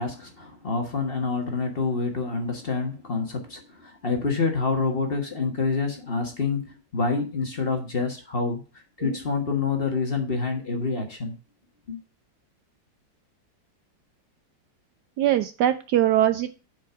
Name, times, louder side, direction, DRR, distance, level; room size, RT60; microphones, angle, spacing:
voice 1, 0.0-8.6 9.0-11.4 11.9-12.0, left 4 dB, 30° left, 1.5 m, -27 dB
voice 2, 15.2-16.5, right 12 dB, 70° right, 1.0 m, -22 dB
7.4 x 5.2 x 5.7 m
omnidirectional pair, 2.0 m